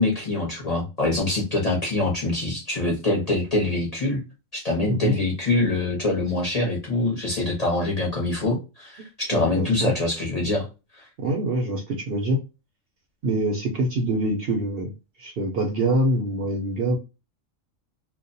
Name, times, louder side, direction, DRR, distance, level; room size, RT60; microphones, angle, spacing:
voice 1, 0.0-4.2 4.5-10.7 10.9-11.1, left 2 dB, 40° left, -2 dB, 0.7 m, -24 dB
voice 2, 4.8-5.2 9.3-9.9 11.2-12.4 13.2-14.9 15.2-17.0, right 1 dB, 60° right, 2 dB, 0.7 m, -25 dB
2.3 x 2.1 x 2.5 m, 0.28 s
omnidirectional pair, 1.3 m